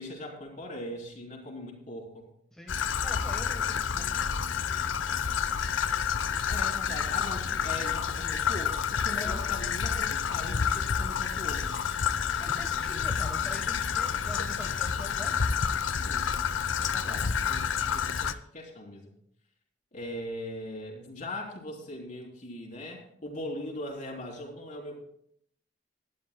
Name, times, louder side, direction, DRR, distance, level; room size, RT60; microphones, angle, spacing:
voice 1, 0.0-2.3 6.5-11.8 12.8-13.1 16.0-16.3 16.8-19.1 19.9-25.0, left 1 dB, 40° left, -1 dB, 3.6 m, -40 dB
voice 2, 2.5-4.1 9.1-9.4 12.4-15.3, equal, 5° left, 0 dB, 1.2 m, -44 dB
Traffic noise roadway noise / Trickle dribble, 2.7-18.3, left 7 dB, 90° left, 0.6 m, -29 dB
19.5 x 12.0 x 2.2 m, 0.67 s
head